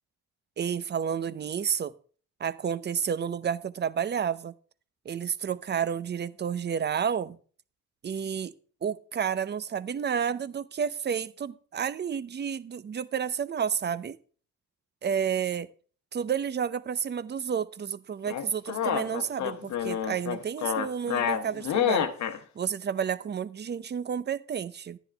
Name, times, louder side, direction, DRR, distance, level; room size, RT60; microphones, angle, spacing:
voice 1, 0.6-1.9 2.4-4.5 5.0-7.4 8.0-8.5 8.8-14.2 15.0-15.7 16.1-22.1 22.6-25.0, right 7 dB, 35° right, 0.6 m, -30 dB
sound 1, 18.3-22.4, left 9 dB, 70° left, 1.1 m, -28 dB
11.0 x 10.0 x 3.4 m
cardioid pair, 90°, 30 cm